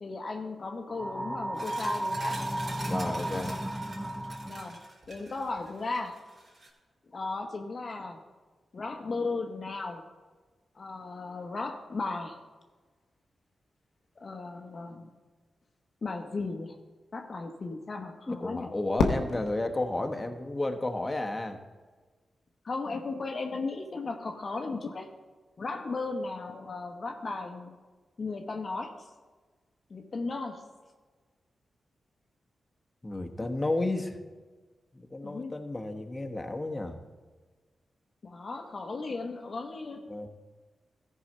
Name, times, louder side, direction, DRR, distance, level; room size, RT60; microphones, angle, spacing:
voice 1, 0.0-2.5 4.5-4.8 5.1-6.2 7.1-8.2 8.7-10.1 10.7-12.4 14.2-15.1 16.0-16.8 17.1-18.7 22.6-25.1 25.6-27.8 28.2-29.1 29.9-30.7 35.2-35.5 38.2-40.2, left 3 dB, 55° left, 3 dB, 0.9 m, -36 dB
sound 1, 0.9-4.9, right 1 dB, ahead, 0.6 m, -34 dB
sound 2, 1.5-6.7, right 2 dB, 55° right, 3.3 m, -46 dB
voice 2, 2.8-3.5 18.3-21.6 33.0-34.2 34.9-37.0 38.3-38.4 40.1-40.3, left 2 dB, 25° left, 5 dB, 1.1 m, -32 dB
Fireworks, 19.0-21.2, left 4 dB, 85° left, 0.8 m, -32 dB
14.0 x 4.8 x 5.5 m, 1.4 s
supercardioid pair, 40°, 0 cm